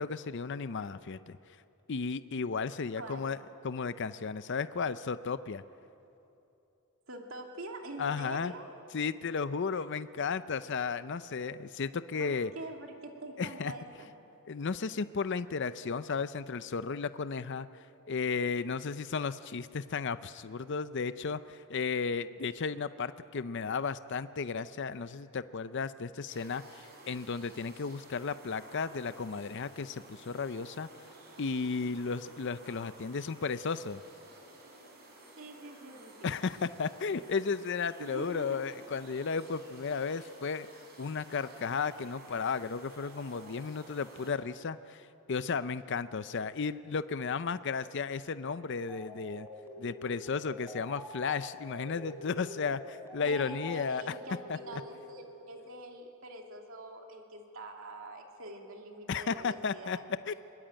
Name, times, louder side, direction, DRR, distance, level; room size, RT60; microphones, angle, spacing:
voice 1, 0.0-1.4 1.9-3.4 3.6-5.6 8.0-8.5 8.9-12.5 13.4-13.7 14.5-17.7 18.1-30.9 31.4-34.0 36.2-40.7 41.0-49.5 49.8-54.2 54.5-54.6 59.1-60.0 60.3-60.4, left 5 dB, 55° left, 13 dB, 0.5 m, -34 dB
voice 2, 3.0-3.3 7.1-8.7 9.7-9.8 12.2-14.1 35.4-36.3 38.0-38.6 53.2-60.3, right 2 dB, 65° right, 2 dB, 2.8 m, -45 dB
sound 1, 26.3-44.3, right 2 dB, 45° right, 5.9 m, -54 dB
sound 2, 48.9-55.1, left 1 dB, 10° right, 3.8 m, -46 dB
22.0 x 21.0 x 8.9 m, 2.8 s
head